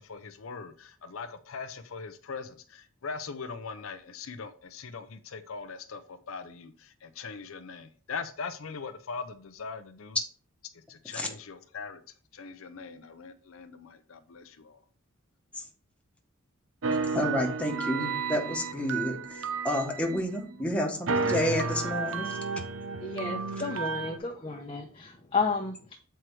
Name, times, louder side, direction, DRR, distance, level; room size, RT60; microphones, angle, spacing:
voice 1, 0.0-10.2 10.7-12.0 12.3-14.8, left 5 dB, 70° left, 10 dB, 0.6 m, -41 dB
sound 1, 16.8-20.6 21.1-24.2, right 4 dB, 65° right, 0.6 m, -32 dB
voice 2, 17.1-22.3, left 1 dB, 5° left, 1 dB, 1.3 m, -30 dB
voice 3, 23.0-26.0, left 4 dB, 25° left, 0 dB, 0.8 m, -32 dB
7.7 x 4.6 x 4.7 m, 0.42 s
head